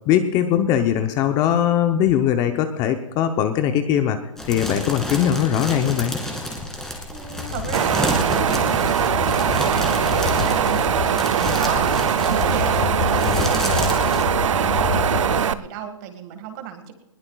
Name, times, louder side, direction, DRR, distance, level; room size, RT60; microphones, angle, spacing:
voice 1, 0.1-4.2 4.5-6.1 13.2-13.5, left 10 dB, 20° left, 8 dB, 0.8 m, -20 dB
sound 1, 4.4-14.2, left 1 dB, 5° left, 2.0 m, -30 dB
voice 2, 7.1-16.9, right 9 dB, 35° right, 7 dB, 1.8 m, -33 dB
sound 2, 7.4-15.4, left 8 dB, 40° left, 1.1 m, -29 dB
Wind, 7.7-15.5, right 8 dB, 65° right, 0.7 m, -21 dB
20.5 x 20.0 x 2.4 m, 1.0 s
hypercardioid pair, 145°, 17 cm